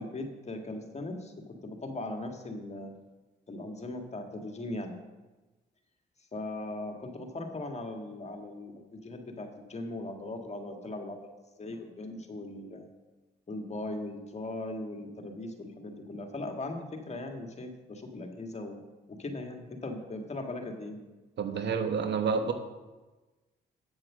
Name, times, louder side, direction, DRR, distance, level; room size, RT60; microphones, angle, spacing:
voice 1, 0.0-1.3 1.6-2.9 3.5-4.9 6.3-11.3 11.6-12.9 13.5-18.8 19.1-21.0, left 2 dB, 35° left, 3 dB, 1.8 m, -39 dB
voice 2, 21.4-22.5, right 5 dB, 65° right, 7 dB, 1.1 m, -29 dB
8.4 x 7.5 x 6.3 m, 1.2 s
supercardioid pair, 65°, 20 cm